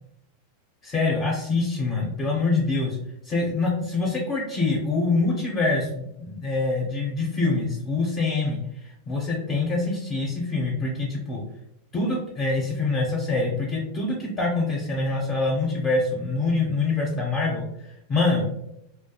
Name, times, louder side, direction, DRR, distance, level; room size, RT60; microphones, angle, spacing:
voice 1, 0.8-3.0 3.3-8.6 9.1-11.4 11.9-18.5, left 3 dB, 25° left, -2 dB, 0.6 m, -25 dB
2.3 x 2.0 x 2.8 m, 0.80 s
supercardioid pair, 130°, 0 cm